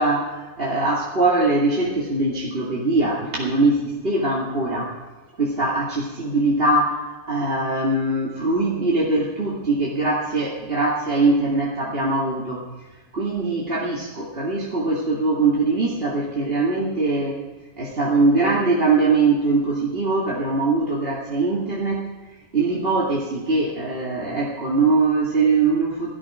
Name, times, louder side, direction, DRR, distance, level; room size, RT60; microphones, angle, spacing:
voice 1, 0.0-5.0 5.4-12.6 13.1-17.4 17.8-22.1 22.5-26.1, right 3 dB, 55° right, -5 dB, 2.6 m, -22 dB
18.0 x 13.0 x 5.0 m, 1.3 s
omnidirectional pair, 1.2 m